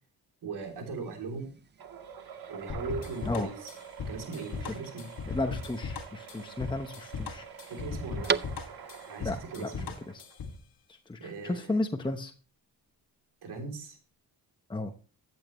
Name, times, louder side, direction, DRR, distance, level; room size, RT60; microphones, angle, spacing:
voice 1, 0.4-1.6 2.5-3.7 4.1-5.1 7.7-8.5 9.1-9.9 11.2-11.7 13.4-14.0, right 4 dB, 85° right, 3 dB, 3.4 m, -39 dB
sound 1, 0.6-9.1, right 6 dB, 30° right, 0.4 m, -41 dB
sound 2, 1.8-10.6, right 7 dB, 65° right, 1.8 m, -47 dB
sound 3, 2.7-10.6, left 5 dB, 60° left, 1.8 m, -38 dB
voice 2, 5.3-7.5 9.2-9.7 10.1-10.2 10.9-12.3 14.7-14.9, left 2 dB, 10° left, 5 dB, 1.0 m, -33 dB
14.5 x 9.0 x 3.1 m, 0.37 s
cardioid pair, 105°, 39 cm